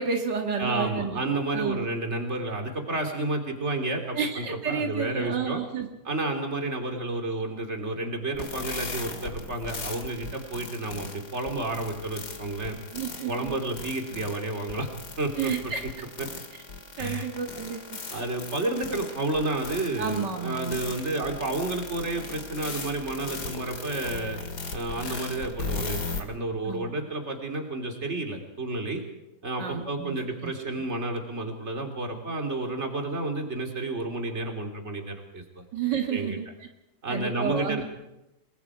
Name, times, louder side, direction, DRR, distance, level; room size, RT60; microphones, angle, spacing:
voice 1, 0.0-1.3 1.5-1.9 4.1-5.9 12.9-13.6 15.4-15.8 17.0-18.0 20.0-20.8 26.7-26.9 29.6-30.2 30.4-30.5 35.7-36.4 37.1-37.8, right 6 dB, 80° right, 3 dB, 2.4 m, -30 dB
voice 2, 0.6-5.6 6.0-12.8 13.2-14.9 15.2-15.9 16.2-16.3 17.0-17.3 18.1-24.4 24.7-29.0 29.4-35.6 36.1-36.4 37.0-37.8, right 2 dB, 40° right, 4 dB, 3.3 m, -31 dB
sound 1, 8.3-26.2, left 4 dB, 65° left, 2.9 m, -38 dB
28.5 x 21.0 x 4.9 m, 0.93 s
omnidirectional pair, 1.8 m